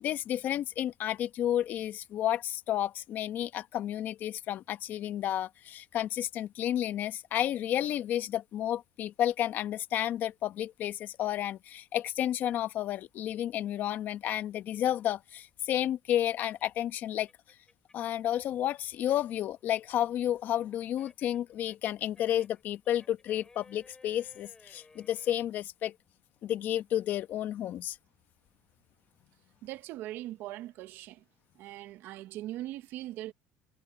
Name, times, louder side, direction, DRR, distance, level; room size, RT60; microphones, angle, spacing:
voice 1, 0.0-17.3 17.9-25.9 26.4-28.0, left 11 dB, 50° left, 1.2 m, -31 dB
sound 1, 14.7-18.2 18.6-25.3, left 3 dB, 15° left, 6.8 m, -59 dB
voice 2, 29.6-31.2 31.6-33.3, right 15 dB, 60° right, 1.0 m, -40 dB
cardioid pair, 125°, 4 cm